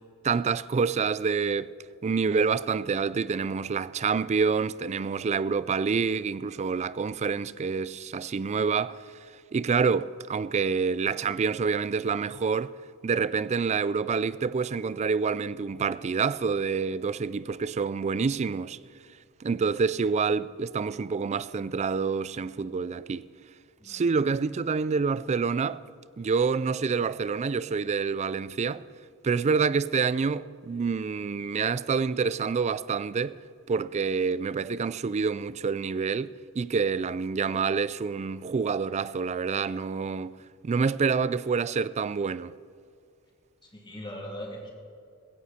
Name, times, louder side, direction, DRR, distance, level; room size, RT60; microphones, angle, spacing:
voice 1, 0.2-1.7 2.0-9.0 9.5-12.7 13.0-18.8 19.4-23.3 23.9-25.8 26.2-28.8 29.2-33.4 33.7-40.3 40.6-42.5, right 5 dB, 30° right, 0.3 m, -27 dB
voice 2, 43.6-44.7, equal, 20° left, 3.0 m, -40 dB
16.5 x 15.0 x 4.3 m
head